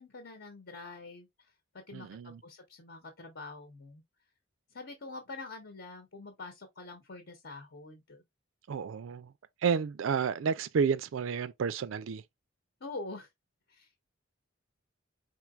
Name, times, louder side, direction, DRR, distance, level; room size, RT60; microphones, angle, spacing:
voice 1, 0.0-1.5 1.9-4.0 4.7-8.2 12.8-13.3 13.7-14.0, left 3 dB, 60° left, 1.0 m, -45 dB
voice 2, 1.9-2.4 8.7-9.3 9.6-12.2, right 6 dB, 85° right, 0.4 m, -31 dB
4.6 x 3.9 x 2.4 m
head